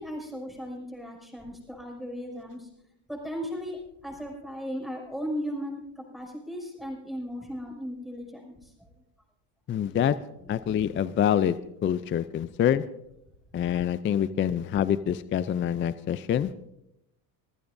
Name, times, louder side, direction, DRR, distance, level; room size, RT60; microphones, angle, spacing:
voice 1, 0.0-2.7 3.1-8.9, equal, ahead, 0 dB, 6.0 m, -36 dB
voice 2, 9.7-10.2 10.5-12.8 13.5-16.5, left 9 dB, 25° left, 14 dB, 0.4 m, -26 dB
25.5 x 15.0 x 2.6 m, 0.80 s
supercardioid pair, 110°, 49 cm